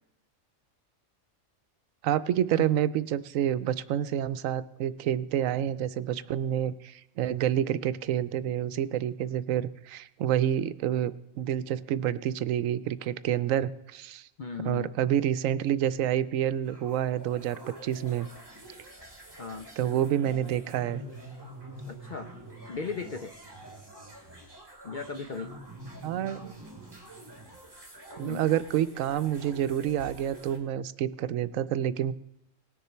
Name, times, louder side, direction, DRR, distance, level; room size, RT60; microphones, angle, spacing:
voice 1, 2.0-14.3 14.6-18.3 19.8-21.0 26.0-26.5 28.2-32.1, right 11 dB, 80° right, 14 dB, 1.0 m, -28 dB
voice 2, 14.4-15.0 19.4-19.7 21.9-22.3 22.7-23.3 24.8-25.6 28.2-28.5, left 5 dB, 55° left, 8 dB, 0.5 m, -37 dB
sound 1, 15.6-30.6, right 1 dB, 20° right, 2.1 m, -46 dB
19.0 x 6.9 x 4.4 m, 0.83 s
omnidirectional pair, 1.4 m